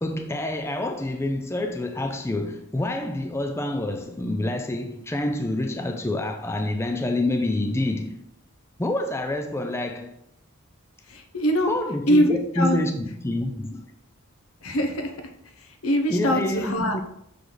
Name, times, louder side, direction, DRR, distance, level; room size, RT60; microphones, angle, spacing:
voice 1, 0.0-8.2 8.8-10.1 11.7-13.9 16.1-17.0, left 1 dB, 10° left, 0.4 m, -27 dB
voice 2, 11.1-11.7 12.1-12.8 14.6-15.1 15.8-17.0, equal, 75° left, 1.0 m, -22 dB
6.3 x 5.1 x 3.9 m
head